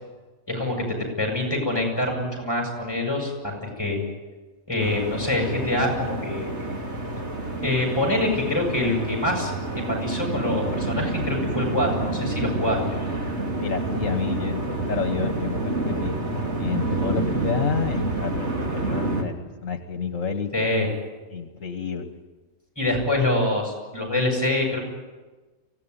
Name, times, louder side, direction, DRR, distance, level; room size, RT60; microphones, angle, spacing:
voice 1, 0.5-4.0 4.7-6.5 7.6-12.8 20.5-20.9 22.8-24.8, left 1 dB, 20° left, 1 dB, 7.8 m, -25 dB
sound 1, 4.8-19.2, right 2 dB, 55° right, 2.9 m, -28 dB
voice 2, 13.6-16.2 16.6-20.7 21.3-22.1, left 6 dB, 70° left, 6 dB, 1.7 m, -30 dB
24.5 x 17.0 x 9.9 m, 1.2 s
omnidirectional pair, 1.4 m